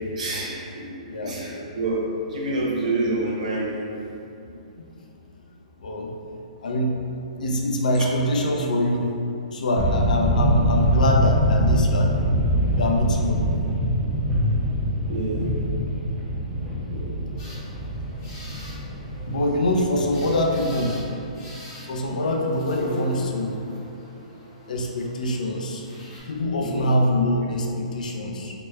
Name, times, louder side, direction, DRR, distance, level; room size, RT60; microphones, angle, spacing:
voice 1, 0.2-0.9 1.2-3.9 8.0-8.1 15.1-15.5 16.9-17.1 19.9-20.0 26.6-26.8, right 2 dB, 65° right, -4 dB, 0.8 m, -27 dB
voice 2, 1.1-1.4 5.8-6.1 6.6-7.0 7.4-9.1 9.5-12.1 12.7-13.4 19.2-21.0 21.9-23.6 24.7-25.8 26.2-28.5, left 1 dB, 85° left, 1 dB, 0.5 m, -24 dB
sound 1, 9.8-21.3, equal, 5° right, 0.3 m, -24 dB
sound 2, 17.4-26.2, left 1 dB, 30° left, 0.8 m, -42 dB
2.9 x 2.1 x 3.4 m, 2.7 s
hypercardioid pair, 170°, 4 cm